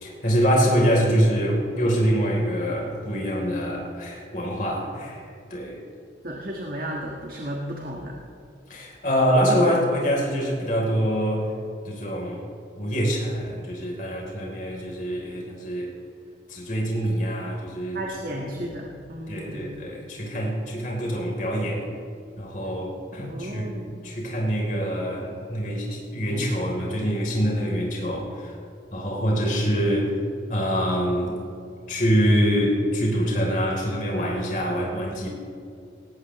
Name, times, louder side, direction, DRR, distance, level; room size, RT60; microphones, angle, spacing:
voice 1, 0.0-5.8 8.7-11.5 11.8-12.4 12.8-15.9 16.5-18.0 18.3-18.5 19.3-21.9 22.4-23.7 24.0-28.6 28.9-30.2 30.5-31.4 31.9-35.3, equal, 45° left, -2 dB, 3.4 m, -25 dB
voice 2, 6.2-8.1 17.9-19.7 23.2-23.9, equal, 50° right, -1 dB, 1.5 m, -34 dB
19.0 x 16.5 x 3.1 m, 2.4 s
head